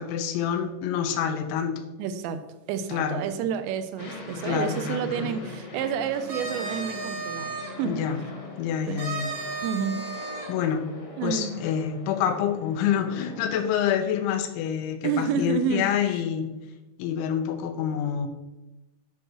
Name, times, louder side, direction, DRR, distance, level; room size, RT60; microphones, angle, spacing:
voice 1, 0.0-1.8 2.9-3.2 4.4-5.3 7.8-8.2 8.6-9.3 10.5-10.9 11.2-16.5 17.0-18.3, left 8 dB, 85° left, 8 dB, 3.2 m, -27 dB
voice 2, 2.0-2.4 2.7-7.5 7.8-8.0 8.9-9.0 9.6-10.0 11.2-11.6 15.0-16.2, right 7 dB, 80° right, 9 dB, 2.8 m, -29 dB
Aircraft, 4.0-13.5, left 2 dB, 55° left, 1.6 m, -42 dB
sound 1, 6.1-7.7 9.0-10.5, right 4 dB, 55° right, 1.5 m, -34 dB
10.5 x 6.1 x 4.6 m, 1.0 s
omnidirectional pair, 5.3 m